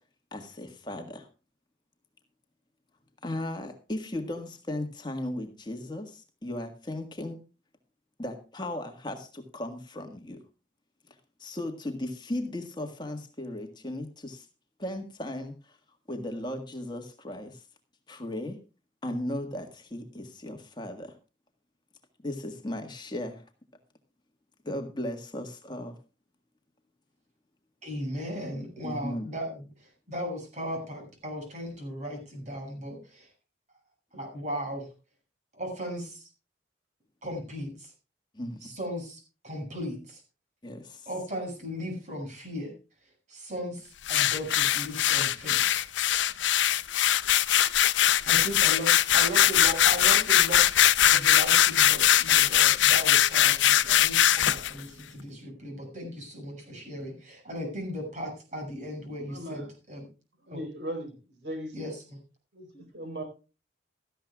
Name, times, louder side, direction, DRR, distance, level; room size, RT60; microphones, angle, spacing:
voice 1, 0.3-1.3 3.2-7.4 8.2-10.4 11.4-14.5 14.8-15.8 16.1-17.6 18.1-18.6 19.0-21.2 22.2-23.4 24.6-26.0 28.8-29.3 38.3-38.6 40.6-41.1, left 1 dB, 25° left, 5 dB, 1.6 m, -36 dB
voice 2, 27.8-33.3 34.1-34.9 35.5-36.2 37.2-37.9 38.6-40.2 41.1-42.7 43.3-45.9 48.1-60.1 60.5-60.6 61.7-62.2, equal, 40° right, 2 dB, 6.8 m, -37 dB
sound 1, 44.1-54.7, left 11 dB, 85° left, 0.6 m, -21 dB
voice 3, 59.3-59.7 60.5-61.1 61.4-61.8 62.5-63.2, right 1 dB, 70° right, 6 dB, 4.4 m, -37 dB
17.0 x 14.0 x 2.3 m, 0.32 s
head